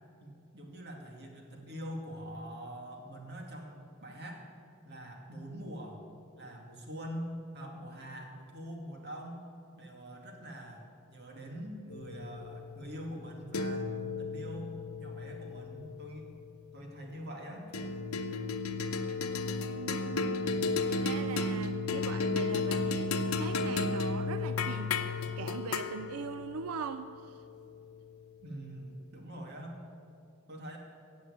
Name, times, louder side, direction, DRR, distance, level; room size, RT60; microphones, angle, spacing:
voice 1, 0.2-4.5 4.8-6.1 6.3-9.4 9.8-16.3 16.7-17.7 28.4-29.8 30.5-30.8, equal, 50° right, 1 dB, 2.2 m, -44 dB
sound 1, 11.9-16.6 17.7-28.2, left 3 dB, 90° left, 0.8 m, -34 dB
voice 2, 19.7-20.4 20.9-23.1 23.4-27.4, right 6 dB, 90° right, 11 dB, 0.4 m, -41 dB
15.0 x 7.8 x 8.5 m, 2.5 s
head